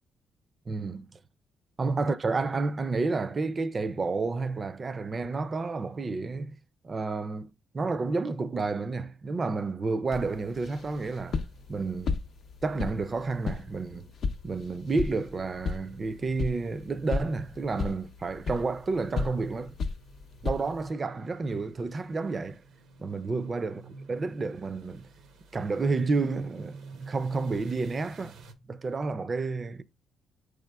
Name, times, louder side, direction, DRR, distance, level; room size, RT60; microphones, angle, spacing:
voice 1, 0.7-1.1 1.8-6.6 6.8-11.4 11.7-12.2 12.6-14.1 14.4-19.8 20.4-22.6 23.0-25.1 25.5-28.4 28.7-29.8, right 3 dB, 35° right, 0.4 m, -30 dB
sound 1, 10.1-20.9, left 4 dB, 60° left, 0.5 m, -36 dB
sound 2, 10.7-28.5, right 3 dB, 80° right, 0.6 m, -53 dB
4.8 x 4.7 x 2.2 m
cardioid pair, 90°, 0 cm